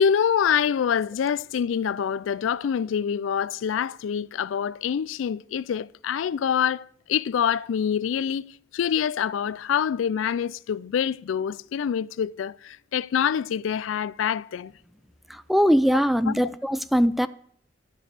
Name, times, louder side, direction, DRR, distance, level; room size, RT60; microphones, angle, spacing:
voice 1, 0.0-6.8 7.1-14.7 16.3-16.5, left 8 dB, 80° left, 0.3 m, -25 dB
voice 2, 15.5-17.3, equal, ahead, 0.3 m, -21 dB
12.0 x 5.3 x 6.5 m
head